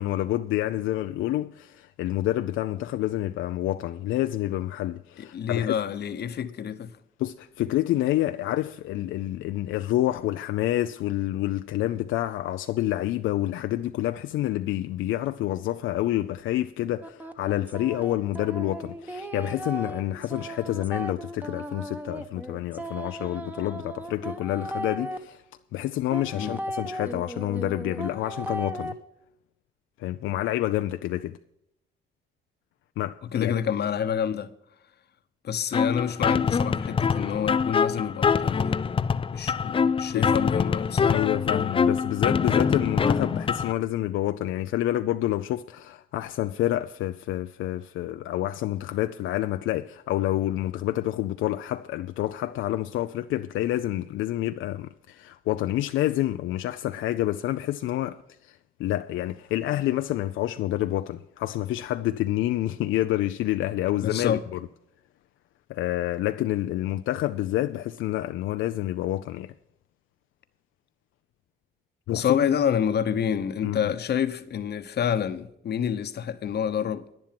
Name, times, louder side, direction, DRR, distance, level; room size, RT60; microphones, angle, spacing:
voice 1, 0.0-5.8 7.2-25.4 25.7-28.9 30.0-31.4 33.0-33.5 40.1-40.4 41.0-64.7 65.7-69.5 72.1-72.3 73.6-73.9, left 14 dB, 80° left, 0.5 m, -28 dB
voice 2, 5.2-6.9 26.3-26.6 33.3-34.5 35.4-38.8 39.3-41.2 64.0-64.4 72.1-77.0, left 8 dB, 55° left, 1.0 m, -28 dB
sound 1, 17.0-25.2 26.1-28.9, right 1 dB, 10° right, 1.1 m, -36 dB
sound 2, 35.7-43.7, left 6 dB, 25° left, 0.4 m, -24 dB
10.5 x 10.0 x 5.9 m
cardioid pair, 90°, 20 cm